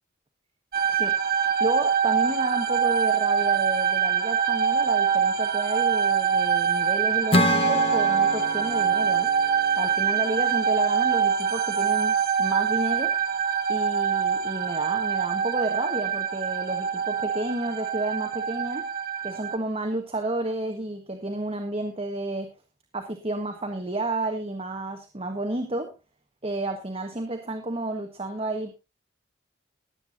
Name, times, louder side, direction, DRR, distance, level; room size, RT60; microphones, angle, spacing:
sound 1, 0.7-19.6, right 7 dB, 50° right, 1.1 m, -24 dB
voice 1, 1.6-9.3 9.8-13.1 13.7-18.9 19.2-22.5 22.9-25.9 26.4-28.7, right 2 dB, 30° right, 4 dB, 1.3 m, -31 dB
Acoustic guitar / Strum, 7.3-10.8, left 2 dB, 30° left, 0.8 m, -28 dB
20.5 x 8.3 x 2.6 m, 0.26 s
head